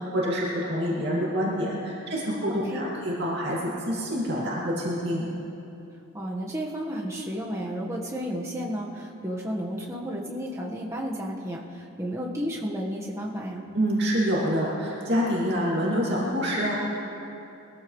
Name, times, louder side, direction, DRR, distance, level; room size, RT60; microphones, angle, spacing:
voice 1, 0.0-5.2 13.7-16.7, equal, 50° right, -6 dB, 2.4 m, -26 dB
voice 2, 2.5-2.8 6.1-13.6, equal, 15° right, -2 dB, 1.4 m, -32 dB
22.0 x 14.0 x 3.2 m, 2.9 s
head